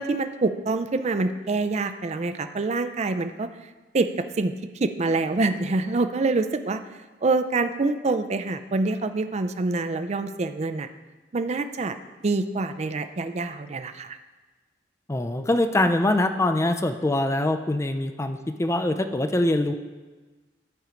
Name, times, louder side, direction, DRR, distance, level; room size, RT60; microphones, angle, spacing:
voice 1, 0.0-3.5 3.9-4.5 4.8-6.8 7.2-10.9 11.3-11.9 12.2-14.2, right 3 dB, 40° right, 9 dB, 0.5 m, -26 dB
voice 2, 15.1-19.7, left 1 dB, 15° left, 7 dB, 0.4 m, -23 dB
11.0 x 4.5 x 5.1 m, 1.3 s
head